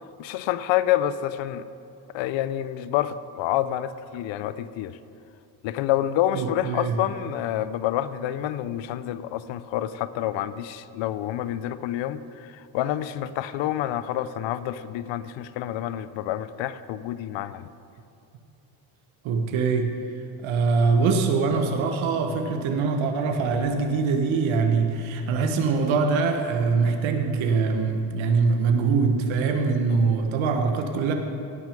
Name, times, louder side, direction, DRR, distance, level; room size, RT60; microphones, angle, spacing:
voice 1, 0.2-1.7 2.1-5.0 5.6-17.7 29.9-30.0, left 12 dB, 70° left, 15 dB, 0.6 m, -28 dB
voice 2, 6.3-7.0 19.2-19.9 20.4-31.1, right 4 dB, 80° right, 4 dB, 1.4 m, -23 dB
17.0 x 6.2 x 5.2 m, 2.6 s
cardioid pair, 105°, 47 cm